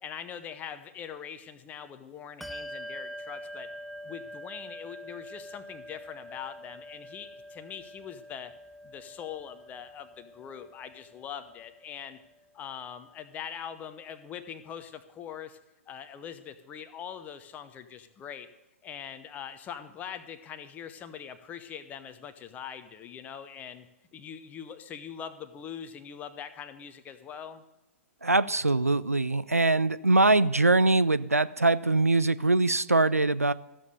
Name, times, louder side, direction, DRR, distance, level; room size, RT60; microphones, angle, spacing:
voice 1, 0.0-3.7 4.0-8.5 8.8-12.2 12.5-15.6 15.9-18.5 18.8-23.9 24.1-27.6, left 8 dB, 20° left, 10 dB, 0.9 m, -42 dB
Bell, 2.4-12.4, equal, ahead, 0.4 m, -45 dB
voice 2, 28.2-33.5, right 2 dB, 90° right, 16 dB, 0.4 m, -23 dB
14.0 x 7.3 x 6.7 m, 1.0 s
figure-of-eight pair, 115°, 8 cm